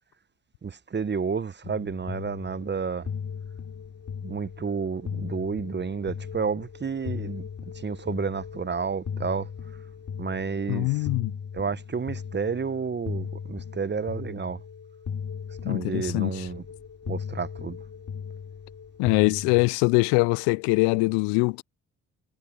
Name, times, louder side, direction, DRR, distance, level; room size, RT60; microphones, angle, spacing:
voice 1, 0.6-3.1 4.2-7.5 7.7-9.5 10.2-11.1 11.5-14.6 15.6-16.6 17.1-17.8, right 5 dB, 25° right, 1.1 m, -31 dB
sound 1, 1.6-19.7, left 7 dB, 45° left, 4.0 m, -37 dB
voice 2, 10.7-11.3 15.6-16.5 19.0-21.6, left 30 dB, 70° left, 0.6 m, -23 dB
hypercardioid pair, 50°, 41 cm